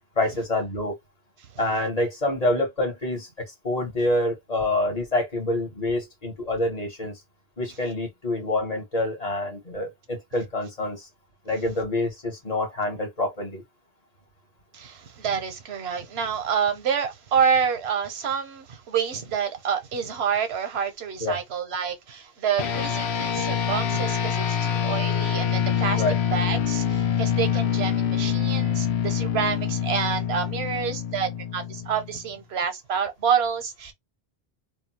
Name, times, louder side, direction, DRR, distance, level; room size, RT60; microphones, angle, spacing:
voice 1, 0.2-0.9 1.6-7.2 7.6-11.1 11.4-13.6 21.2-21.4 25.9-26.2, left 1 dB, 40° left, 1.2 m, -27 dB
voice 2, 14.7-26.0 26.3-33.9, right 7 dB, 90° right, 1.0 m, -28 dB
sound 1, 22.6-32.3, left 8 dB, 90° left, 0.9 m, -25 dB
2.6 x 2.3 x 2.8 m
omnidirectional pair, 1.0 m